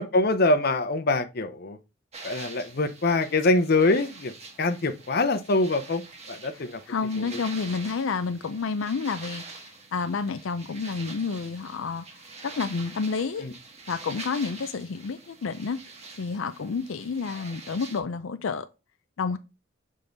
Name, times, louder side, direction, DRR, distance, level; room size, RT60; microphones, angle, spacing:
voice 1, 0.0-1.8 2.2-4.3 4.6-6.0 6.3-6.8 7.2-7.3 13.4-13.5, left 2 dB, 50° left, 0.7 m, -24 dB
sound 1, 2.1-18.0, right 3 dB, 35° right, 1.6 m, -45 dB
voice 2, 6.5-12.1 12.4-13.4 13.9-15.8 16.2-18.7 19.2-19.4, left 5 dB, 85° left, 0.5 m, -30 dB
6.8 x 3.7 x 3.9 m
head